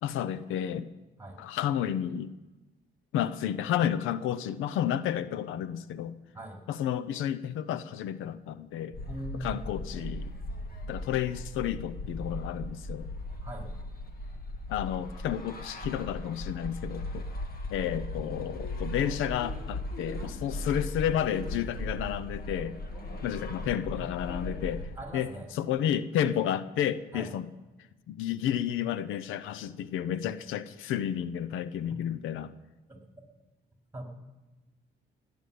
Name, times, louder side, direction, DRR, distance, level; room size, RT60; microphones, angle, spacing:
voice 1, 0.0-0.9 1.4-2.3 3.1-6.1 6.7-9.0 9.4-10.3 10.9-13.1 14.7-17.2 17.7-22.8 23.2-27.5 28.1-32.5, left 10 dB, 90° left, 15 dB, 0.7 m, -31 dB
sound 1, 8.9-25.0, left 1 dB, 50° left, 2.0 m, -38 dB
voice 2, 9.1-9.6 13.4-13.7 20.2-20.7 22.9-23.6 23.9-24.1 25.0-25.5 27.1-27.3 31.9-32.0 32.9-33.0 33.9-34.0, right 1 dB, 10° right, 1 dB, 4.5 m, -42 dB
17.5 x 7.2 x 9.3 m, 1.1 s
cardioid pair, 90°, 20 cm